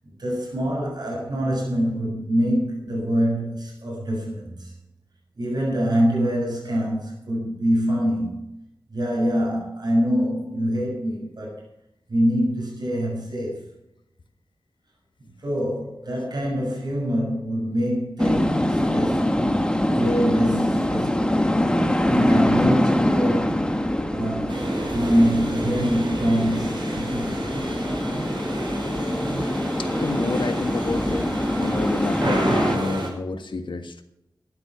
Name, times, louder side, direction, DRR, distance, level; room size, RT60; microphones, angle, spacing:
voice 1, 0.2-4.7 5.4-8.5 8.9-11.6 12.1-13.7 15.4-19.3 19.9-21.5 22.1-23.7 24.1-27.4, equal, 60° right, -2 dB, 6.8 m, -25 dB
sound 1, 18.2-32.8, left 1 dB, 10° left, 1.5 m, -24 dB
sound 2, 24.5-33.1, right 1 dB, 80° right, 5.5 m, -30 dB
voice 2, 29.5-31.3 31.6-34.0, left 3 dB, 90° left, 8 dB, 1.6 m, -29 dB
13.5 x 11.5 x 5.9 m, 0.82 s
wide cardioid pair, 75°, 8 cm